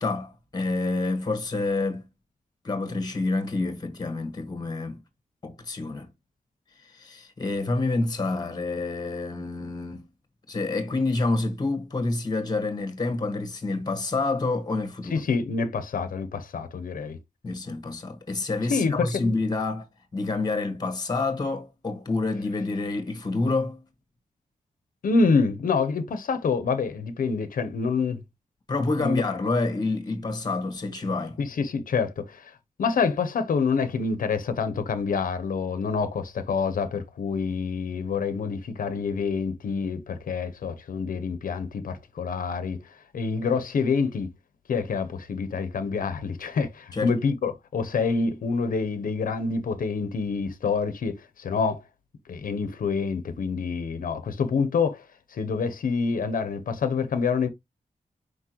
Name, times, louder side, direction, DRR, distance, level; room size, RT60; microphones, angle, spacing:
voice 1, 0.0-2.0 2.6-5.0 5.4-6.1 6.9-10.0 10.5-15.2 17.4-19.8 20.1-23.8 28.7-31.4 46.9-47.1, left 3 dB, 30° left, 1.5 m, -28 dB
voice 2, 15.1-17.2 18.7-19.3 25.0-28.2 29.0-29.2 31.4-32.5 32.8-42.8 43.1-44.3 44.7-51.8 52.3-55.0 55.3-57.5, left 5 dB, 85° left, 0.8 m, -27 dB
6.0 x 5.2 x 3.0 m
wide cardioid pair, 175°, 14 cm